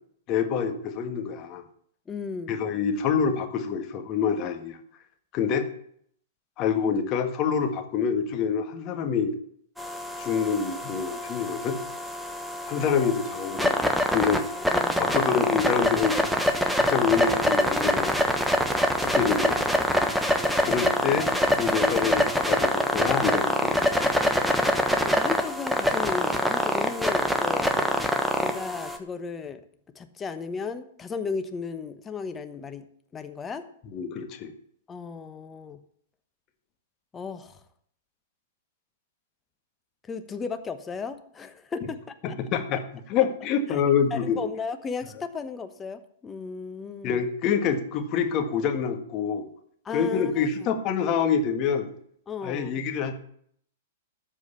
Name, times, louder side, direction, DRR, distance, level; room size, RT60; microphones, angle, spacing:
voice 1, 0.3-1.6 2.5-4.8 5.3-5.7 6.6-9.3 10.2-11.8 12.7-14.4 15.0-16.2 16.7-18.1 19.0-19.9 20.6-21.3 21.6-23.8 27.9-28.0 33.9-34.5 42.2-44.4 47.0-49.4 49.9-51.9 52.4-53.1, left 7 dB, 35° left, 5 dB, 1.8 m, -26 dB
voice 2, 2.1-2.6 13.0-13.1 14.5-15.2 25.0-27.7 28.4-29.6 29.9-32.9 33.1-33.7 34.9-35.8 37.1-37.6 40.1-42.4 43.7-43.8 44.1-47.2 49.8-50.5 52.3-52.8, left 5 dB, 20° left, 9 dB, 1.1 m, -35 dB
sound 1, 9.8-29.0, equal, ahead, 1.3 m, -25 dB
13.5 x 4.9 x 8.4 m, 0.65 s
hypercardioid pair, 110°, 0 cm